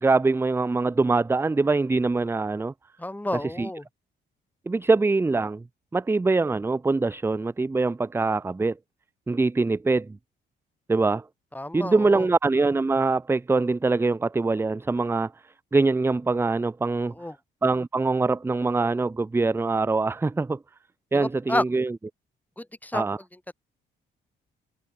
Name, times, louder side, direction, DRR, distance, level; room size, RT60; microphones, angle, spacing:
voice 1, 0.0-2.7 3.4-3.7 4.7-5.6 5.9-8.8 9.3-10.2 10.9-11.2 11.7-15.3 15.7-17.1 17.6-20.6 21.1-22.0 22.9-23.2, right 3 dB, 10° right, 0.4 m, -23 dB
voice 2, 3.0-3.9 11.5-12.3 17.2-17.4 21.1-21.6 22.6-23.1, left 1 dB, 10° left, 3.9 m, -30 dB
cardioid pair, 90°, 20 cm